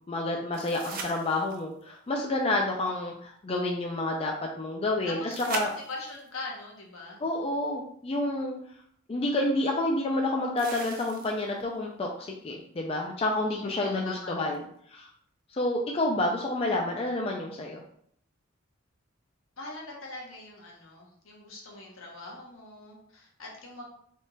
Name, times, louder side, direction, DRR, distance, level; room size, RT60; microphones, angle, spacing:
voice 1, 0.1-5.7 7.2-8.6 9.1-14.6 14.9-15.1 15.5-17.8, left 2 dB, 25° left, 0 dB, 0.4 m, -29 dB
sound 1, 0.5-1.8 5.3-6.3 8.2-8.3 10.6-11.6 14.5-14.6, right 4 dB, 45° right, 0.5 m, -40 dB
voice 2, 5.1-7.2 13.5-14.4 19.6-23.8, left 2 dB, 75° left, -2 dB, 1.1 m, -42 dB
3.6 x 2.4 x 4.0 m, 0.66 s
head